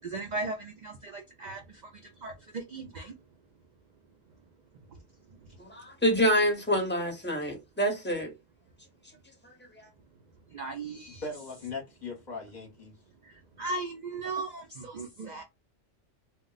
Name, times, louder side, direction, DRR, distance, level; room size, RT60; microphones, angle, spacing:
voice 1, 0.0-3.1 4.9-5.0 5.3-5.6 10.5-11.2 13.2-15.4, right 3 dB, 75° right, 0.4 m, -37 dB
voice 2, 5.6-8.3 9.8-9.9, equal, 10° left, 0.7 m, -27 dB
voice 3, 11.2-12.9, left 3 dB, 40° left, 0.9 m, -39 dB
2.2 x 2.1 x 3.8 m
omnidirectional pair, 1.3 m